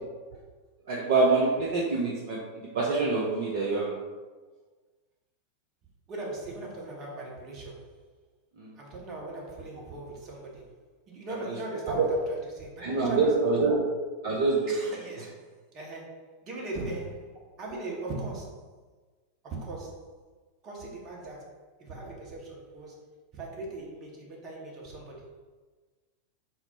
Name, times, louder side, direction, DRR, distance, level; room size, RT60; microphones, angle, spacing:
voice 1, 0.9-2.4 2.7-4.0 8.6-8.7 11.9-12.1 12.8-13.8 14.2-14.7, right 3 dB, 50° right, -3 dB, 0.5 m, -25 dB
voice 2, 6.1-7.9 8.8-10.7 11.1-13.3 14.7-18.7 19.4-20.2 20.6-21.5 21.8-23.0 23.3-25.3, right 2 dB, 35° right, -2 dB, 0.9 m, -39 dB
4.2 x 2.0 x 4.2 m, 1.4 s
figure-of-eight pair, 90°, 0 cm